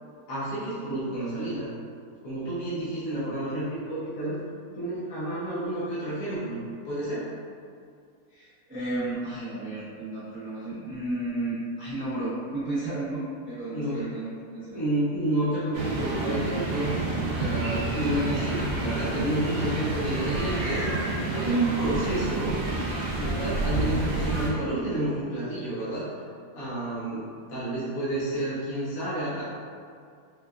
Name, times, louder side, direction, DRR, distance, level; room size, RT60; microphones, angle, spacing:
voice 1, 0.3-1.7 2.2-4.4 4.8-7.3 13.7-14.1 14.7-16.9 17.3-20.9 21.3-22.6 23.1-26.0 26.5-29.4, right 1 dB, 65° left, -10 dB, 1.1 m, -30 dB
voice 2, 8.3-14.9, right 2 dB, 20° right, -11 dB, 0.3 m, -33 dB
sound 1, 15.7-24.5, right 2 dB, 80° right, 0.5 m, -29 dB
4.4 x 2.2 x 2.3 m, 2.2 s
omnidirectional pair, 1.7 m